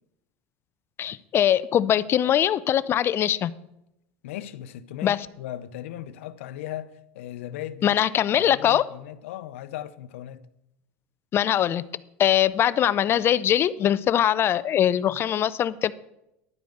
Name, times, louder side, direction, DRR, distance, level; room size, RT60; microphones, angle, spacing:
voice 1, 1.0-3.5 5.0-5.2 7.8-8.8 11.3-11.8 12.2-15.9, left 10 dB, 35° left, 0.4 m, -22 dB
voice 2, 4.2-8.0 8.4-10.4, left 12 dB, 85° left, 0.6 m, -37 dB
11.0 x 5.1 x 7.7 m
supercardioid pair, 120°, 7 cm